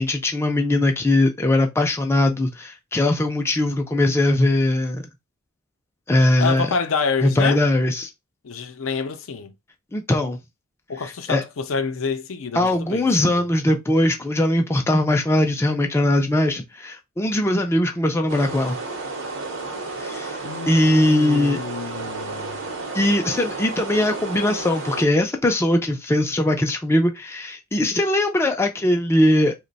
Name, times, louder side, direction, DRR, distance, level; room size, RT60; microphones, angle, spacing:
voice 1, 0.0-5.0 6.1-6.7 7.2-8.1 9.9-10.4 11.0-11.4 12.5-18.8 20.0-20.4 20.7-21.6 22.9-29.5, left 1 dB, 10° left, 0.4 m, -20 dB
voice 2, 6.4-7.6 8.4-9.5 10.9-13.5 20.4-22.6, left 5 dB, 70° left, 0.5 m, -27 dB
sound 1, 18.3-25.0, right 3 dB, 65° right, 0.8 m, -32 dB
2.9 x 2.1 x 3.9 m
head